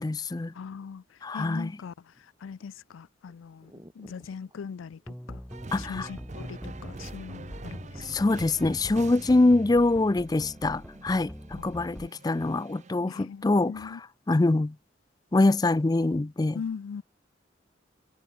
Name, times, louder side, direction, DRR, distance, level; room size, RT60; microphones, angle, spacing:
voice 1, 0.0-0.5 1.2-1.7 5.7-6.1 8.0-14.0 14.3-14.8 15.3-16.6, left 2 dB, 20° left, 0.4 m, -24 dB
voice 2, 0.5-5.4 5.8-8.3 11.6-11.7 12.0-12.1 13.1-14.0 16.5-17.0, left 6 dB, 85° left, 0.4 m, -41 dB
sound 1, 2.1-2.6 3.3-3.4 3.6-8.9 9.4-11.9 12.1-12.7 13.0-13.9, equal, 20° right, 3.7 m, -57 dB
sound 2, 5.1-12.1, equal, ahead, 1.0 m, -43 dB
sound 3, 5.5-12.9, right 2 dB, 35° right, 0.8 m, -45 dB
head